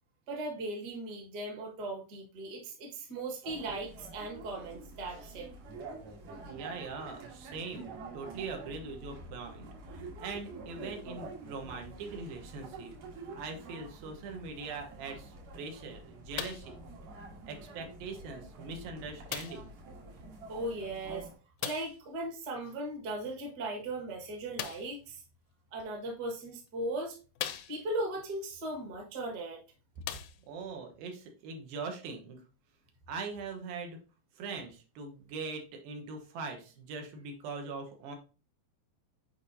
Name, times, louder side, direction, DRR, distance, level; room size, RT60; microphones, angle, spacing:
voice 1, 0.3-5.5 20.5-21.3 21.6-25.2 25.7-27.2 27.7-29.6, right 2 dB, 45° right, 1.3 m, -38 dB
sound 1, 3.4-21.3, right 3 dB, 65° right, 3.1 m, -47 dB
voice 2, 6.4-16.8 17.5-19.7 30.5-32.4 33.1-34.0 34.4-38.2, right 4 dB, 90° right, 3.0 m, -42 dB
sound 2, 16.4-16.8 17.7-17.8 19.3-19.7 21.6-22.0 24.5-25.0 26.0-26.1 26.7-26.8 27.4-28.1 29.3-29.4 30.0-30.7 31.5-31.6, left 12 dB, 85° left, 2.3 m, -39 dB
8.3 x 4.8 x 2.7 m
omnidirectional pair, 4.0 m